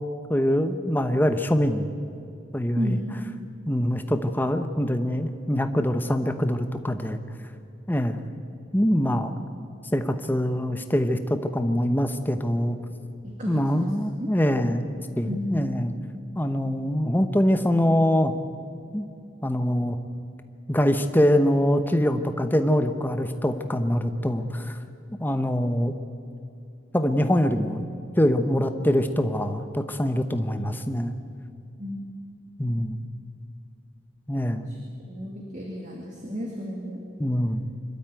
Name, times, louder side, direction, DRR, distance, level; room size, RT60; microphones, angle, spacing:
voice 1, 0.3-1.9 2.5-3.0 3.7-7.2 7.9-8.3 8.7-9.3 9.9-12.8 13.5-15.9 16.3-18.3 18.9-19.1 19.4-20.0 20.7-24.8 25.2-25.9 26.9-27.8 28.2-31.1 32.6-33.0 34.3-34.7 37.2-37.6, equal, 10° left, 8 dB, 0.9 m, -24 dB
voice 2, 13.2-14.8 15.2-15.7 31.8-32.0 34.7-34.8 35.1-37.1, equal, 35° right, -1 dB, 2.4 m, -34 dB
25.0 x 12.5 x 9.0 m, 2.5 s
head